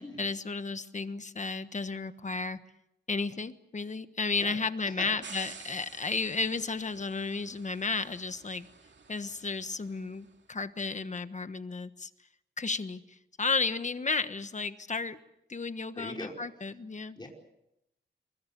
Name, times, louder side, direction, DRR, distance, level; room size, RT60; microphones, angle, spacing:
voice 1, 0.0-2.6 3.1-8.7 9.1-12.1 12.6-15.2 15.5-17.2, left 4 dB, 40° left, 11 dB, 1.3 m, -33 dB
sound 1, 5.2-10.3, right 5 dB, 75° right, 2.5 m, -51 dB
voice 2, 15.9-16.3 17.2-17.3, left 2 dB, 25° left, 0 dB, 4.9 m, -41 dB
28.0 x 23.0 x 6.9 m, 0.85 s
wide cardioid pair, 115°, 19 cm